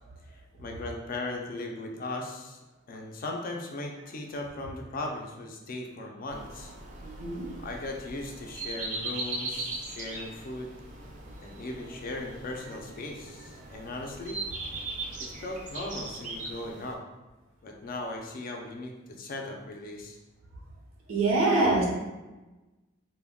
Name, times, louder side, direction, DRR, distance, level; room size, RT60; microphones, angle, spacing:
voice 1, 0.3-2.6 2.9-6.7 7.6-10.7 11.4-14.4 15.4-17.0 17.6-20.2, left 2 dB, 45° left, 1 dB, 0.4 m, -38 dB
sound 1, 6.3-16.9, right 2 dB, 40° right, 0.4 m, -39 dB
voice 2, 7.0-7.5 21.1-21.8, right 2 dB, 85° right, -2 dB, 0.7 m, -24 dB
2.2 x 2.1 x 3.5 m, 1.1 s
head